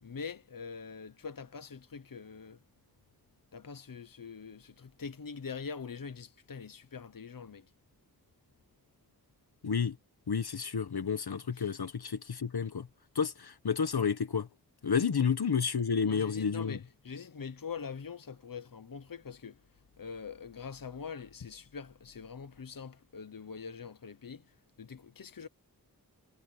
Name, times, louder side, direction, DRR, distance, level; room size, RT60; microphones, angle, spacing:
voice 1, 0.0-2.6 3.5-7.7 11.5-11.7 15.2-15.3 16.0-19.6 20.0-25.5, left 5 dB, 60° left, 1.0 m, -44 dB
voice 2, 9.6-9.9 10.3-12.9 13.1-14.5 14.8-16.8, left 6 dB, 80° left, 1.2 m, -30 dB
wide cardioid pair, 75°, 37 cm